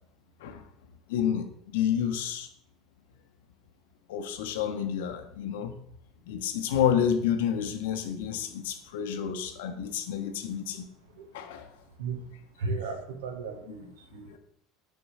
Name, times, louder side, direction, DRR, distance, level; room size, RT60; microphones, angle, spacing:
voice 1, 1.1-2.5 4.1-5.8 6.3-10.9 11.3-11.7 14.1-14.4, left 8 dB, 75° left, 7 dB, 0.8 m, -29 dB
voice 2, 12.6-14.3, right 4 dB, 80° right, 6 dB, 1.0 m, -35 dB
5.9 x 3.6 x 5.4 m, 0.69 s
hypercardioid pair, 75°, 0 cm